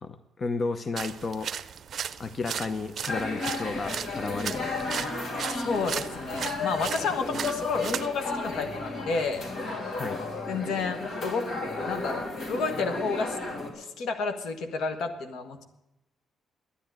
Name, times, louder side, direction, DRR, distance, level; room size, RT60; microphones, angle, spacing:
voice 1, 0.0-1.5 2.2-5.1 10.0-10.2, left 3 dB, 40° left, 11 dB, 0.7 m, -33 dB
sound 1, 1.0-8.1, right 8 dB, 55° right, 0.5 m, -36 dB
sound 2, 3.1-13.7, left 3 dB, 55° left, 3.1 m, -33 dB
voice 2, 5.5-9.4 10.5-11.5 11.9-13.4 13.7-15.6, left 4 dB, 75° left, 7 dB, 1.4 m, -31 dB
10.0 x 10.0 x 9.1 m, 0.90 s
cardioid pair, 90°, 0 cm